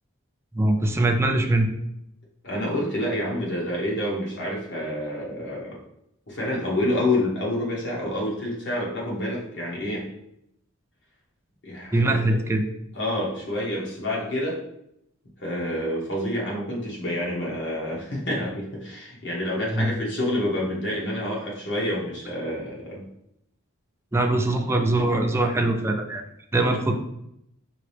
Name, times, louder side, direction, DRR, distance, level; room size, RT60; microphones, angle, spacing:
voice 1, 0.5-1.7 11.9-12.7 19.7-19.9 24.1-26.2 26.5-26.9, right 2 dB, 10° right, 3 dB, 0.4 m, -22 dB
voice 2, 2.4-5.8 6.3-10.1 11.6-12.4 12.9-14.6 15.4-23.1, left 1 dB, 60° left, -4 dB, 1.4 m, -28 dB
5.0 x 2.7 x 3.3 m, 0.79 s
head